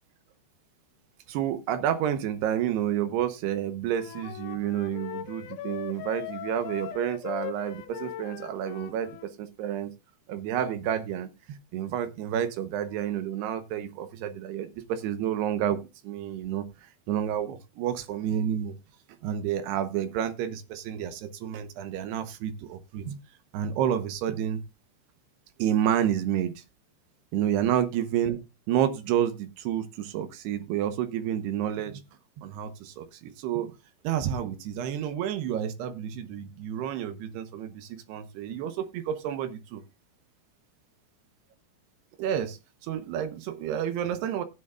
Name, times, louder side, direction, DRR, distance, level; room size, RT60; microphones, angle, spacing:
voice 1, 1.3-9.9 10.3-16.6 17.1-18.7 19.2-23.2 23.5-24.6 25.6-26.6 27.3-28.4 28.7-32.0 32.4-33.7 34.0-39.8 42.2-44.4, right 10 dB, 75° right, 2.9 m, -30 dB
Wind instrument woodwind instrument, 3.9-9.3, left 12 dB, 75° left, 2.4 m, -39 dB
16.0 x 9.1 x 2.4 m
omnidirectional pair, 5.1 m